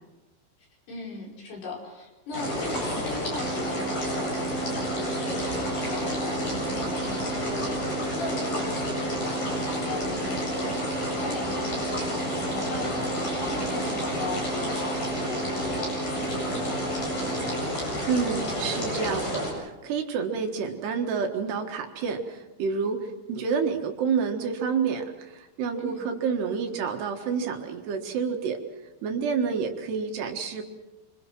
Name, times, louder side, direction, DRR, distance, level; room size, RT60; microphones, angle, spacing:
voice 1, 0.9-17.0 25.8-26.1, left 2 dB, 60° left, -2 dB, 7.3 m, -39 dB
sound 1, 2.3-19.5, left 1 dB, 40° left, 9.5 m, -30 dB
sound 2, 3.4-17.6, right 6 dB, 35° right, 1.4 m, -36 dB
voice 2, 18.1-28.6 29.0-30.6, right 6 dB, 65° right, 4 dB, 3.5 m, -29 dB
27.0 x 26.5 x 6.2 m, 1.1 s
omnidirectional pair, 5.4 m